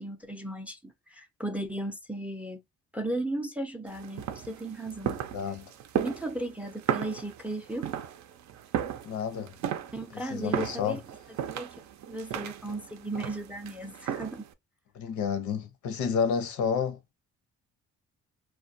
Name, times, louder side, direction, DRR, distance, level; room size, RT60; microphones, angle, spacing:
voice 1, 0.0-2.6 2.9-5.2 5.9-7.9 9.4-9.5 9.9-11.0 11.4-11.8 12.1-14.5, right 1 dB, 5° right, 0.4 m, -36 dB
sound 1, 3.9-14.5, right 9 dB, 65° right, 0.5 m, -35 dB
voice 2, 5.3-5.6 9.0-9.5 10.3-11.0 14.9-17.0, left 6 dB, 75° left, 0.7 m, -30 dB
2.2 x 2.2 x 2.5 m
cardioid pair, 90°, 30 cm